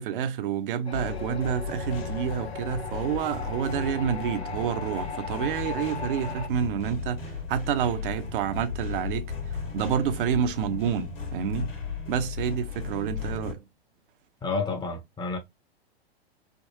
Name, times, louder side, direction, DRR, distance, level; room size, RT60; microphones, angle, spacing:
voice 1, 0.0-11.8 12.1-13.6, right 8 dB, 55° right, 0.7 m, -29 dB
sound 1, 0.9-6.5, left 5 dB, 90° left, 0.7 m, -37 dB
sound 2, 0.9-13.5, left 5 dB, 60° left, 1.5 m, -36 dB
voice 2, 14.4-15.4, left 4 dB, 15° left, 0.8 m, -30 dB
3.6 x 2.1 x 2.7 m
hypercardioid pair, 105°, 31 cm